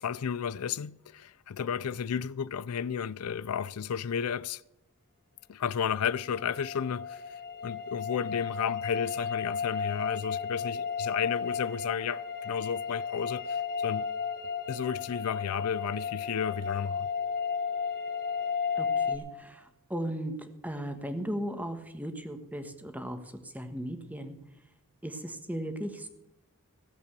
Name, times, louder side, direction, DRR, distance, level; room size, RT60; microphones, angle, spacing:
voice 1, 0.0-4.6 5.5-14.1 14.7-17.1, left 7 dB, 85° left, 0.4 m, -33 dB
sound 1, 6.0-19.2, left 6 dB, 40° left, 1.7 m, -33 dB
voice 2, 18.8-19.6 19.9-20.3 20.6-23.2 23.5-24.3 25.0-26.1, equal, 5° right, 1.4 m, -36 dB
16.0 x 8.2 x 6.7 m
head